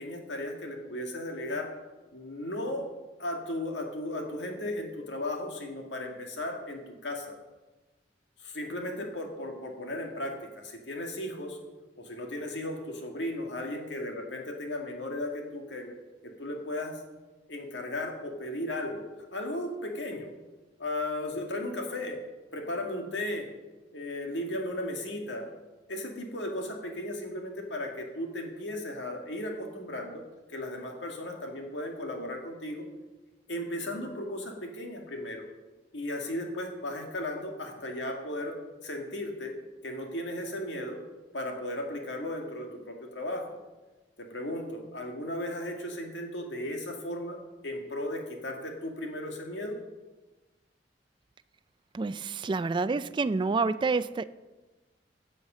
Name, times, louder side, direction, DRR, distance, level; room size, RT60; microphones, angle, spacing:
voice 1, 0.0-1.7 2.1-2.9 3.2-7.4 8.4-11.6 12.0-15.9 16.2-17.0 17.5-19.0 19.3-20.3 20.8-22.2 22.5-23.5 23.9-25.5 25.9-30.2 30.5-32.9 33.5-35.5 35.9-38.5 38.8-39.5 39.8-41.0 41.3-43.5 44.2-47.4 47.6-49.8, left 1 dB, 85° left, 2 dB, 1.9 m, -35 dB
voice 2, 51.9-54.2, right 4 dB, 25° right, 14 dB, 0.3 m, -28 dB
10.5 x 6.6 x 7.3 m, 1.2 s
head